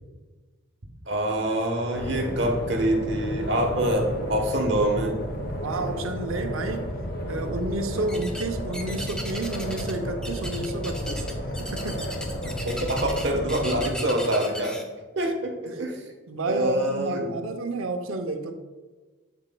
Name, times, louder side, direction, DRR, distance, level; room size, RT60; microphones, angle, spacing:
voice 1, 1.1-5.2 12.4-14.8 15.2-16.0 16.5-17.3, right 1 dB, 55° right, 2 dB, 1.1 m, -26 dB
sound 1, 1.9-13.9, equal, 50° left, 0.9 m, -32 dB
voice 2, 5.6-6.9 7.3-11.3 11.6-12.1 12.7-12.9 13.7-14.0 15.2-15.3 15.7-15.8 16.3-18.5, right 2 dB, 85° right, 6 dB, 0.7 m, -31 dB
sound 2, 8.1-8.5 8.7-10.0 10.2-14.8, equal, 5° left, 0.5 m, -37 dB
7.7 x 7.5 x 2.2 m, 1.3 s
head